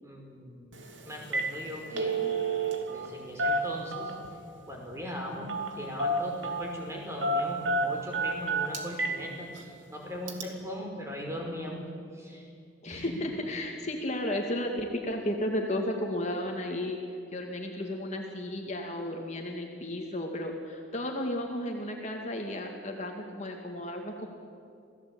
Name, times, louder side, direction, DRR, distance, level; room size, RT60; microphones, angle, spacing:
voice 1, 0.0-0.7 1.1-2.2 2.9-4.1 4.7-11.8 12.1-12.5 12.8-13.1, equal, 15° right, -1 dB, 5.3 m, -39 dB
Telephone, 0.7-0.9 1.2-1.5 1.8-3.1 3.4-4.3 5.5-5.7 6.0-6.7 7.2-9.2 9.6-9.7 10.3-10.4, right 2 dB, 80° right, 2.8 m, -29 dB
voice 2, 12.8-17.0 17.3-24.3, left 1 dB, 35° left, 2 dB, 2.2 m, -33 dB
28.0 x 17.0 x 8.7 m, 2.4 s
head